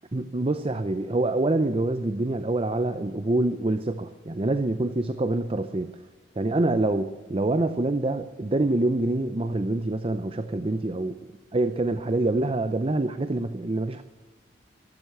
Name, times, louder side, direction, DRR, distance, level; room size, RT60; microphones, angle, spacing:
voice 1, 0.1-5.9 6.4-11.1 11.5-14.0, right 2 dB, 30° right, 10 dB, 0.6 m, -26 dB
13.5 x 12.0 x 6.7 m, 1.3 s
head